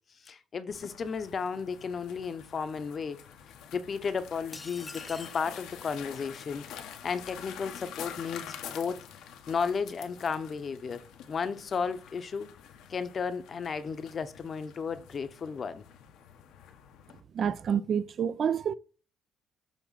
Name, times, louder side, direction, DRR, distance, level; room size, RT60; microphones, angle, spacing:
voice 1, 0.2-3.2 3.7-6.6 7.0-9.0 9.5-12.5 12.9-15.8, left 5 dB, 45° left, 0.8 m, -34 dB
sound 1, 0.7-17.2, left 9 dB, 90° left, 1.0 m, -47 dB
sound 2, 4.5-5.5, left 3 dB, 20° left, 0.4 m, -45 dB
voice 2, 17.3-18.7, right 7 dB, 55° right, 0.4 m, -28 dB
7.2 x 3.0 x 5.7 m
cardioid pair, 90°, 0 cm